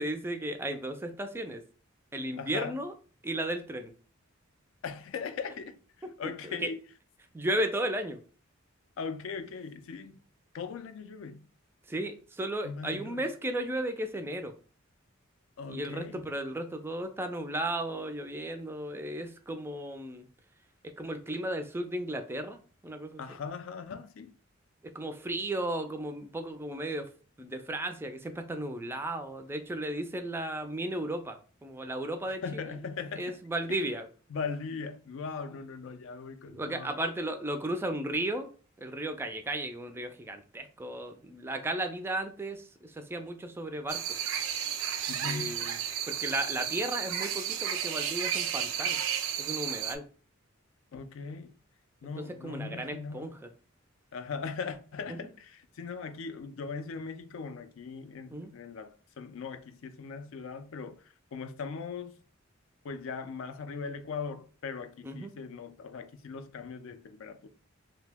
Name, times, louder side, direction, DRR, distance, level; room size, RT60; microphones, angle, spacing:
voice 1, 0.0-1.6 2.1-2.9 3.2-3.9 6.0-6.1 6.4-6.7 7.3-8.2 11.9-14.5 15.7-20.3 21.0-22.6 22.8-23.2 24.9-27.1 27.4-32.8 33.2-34.1 36.5-38.5 38.8-44.0 45.2-45.8 46.1-49.0 49.4-50.0 52.4-53.5 58.3-58.5 65.0-65.3, right 1 dB, 10° right, 0.3 m, -34 dB
voice 2, 2.4-2.8 4.8-5.8 6.2-6.8 9.0-10.2 10.5-11.5 12.6-13.2 15.6-16.3 23.2-24.3 32.3-33.4 33.7-33.9 34.3-37.0 45.1-45.6 50.9-51.5 52.0-53.3 54.1-62.2 62.8-67.5, left 5 dB, 70° left, 0.4 m, -39 dB
sound 1, 43.9-50.0, right 9 dB, 85° right, 0.4 m, -33 dB
2.8 x 2.1 x 3.4 m
head